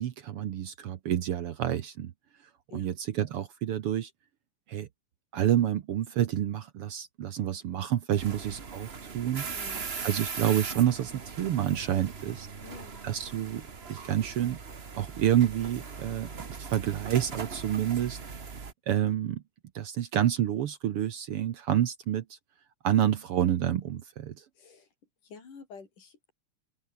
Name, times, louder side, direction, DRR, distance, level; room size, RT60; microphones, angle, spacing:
voice 1, 0.0-2.1 2.7-4.1 4.7-4.9 5.3-9.7 10.0-12.5 13.0-14.6 14.9-18.2 18.9-19.4 19.7-22.4 22.8-24.4, right 11 dB, 60° right, 1.6 m, -28 dB
voice 2, 8.2-8.5 9.5-9.9 12.6-13.0 24.6-24.9 25.2-26.3, left 5 dB, 90° left, 6.4 m, -49 dB
sound 1, 8.2-18.7, right 5 dB, 40° right, 0.8 m, -40 dB
open air
omnidirectional pair, 3.6 m